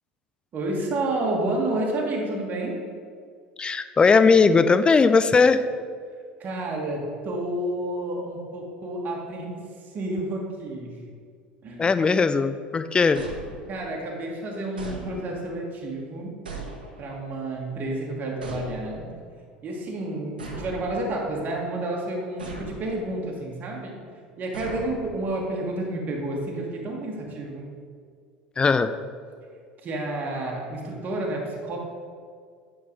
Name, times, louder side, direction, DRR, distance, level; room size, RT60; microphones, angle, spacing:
voice 1, 0.5-2.9 6.4-11.0 11.6-12.0 13.7-16.4 17.0-19.1 19.6-24.0 24.4-27.7 29.8-31.8, right 1 dB, 35° right, -1 dB, 1.6 m, -30 dB
voice 2, 3.6-5.6 11.8-13.2 28.6-28.9, left 4 dB, 20° left, 12 dB, 0.4 m, -18 dB
sound 1, 13.1-14.0 14.8-15.6 16.5-17.3 18.4-19.2 20.4-21.4 22.4-23.2 24.5-25.5, right 3 dB, 80° right, 1.1 m, -39 dB
9.5 x 3.8 x 5.3 m, 2.1 s
figure-of-eight pair, 70°, 5 cm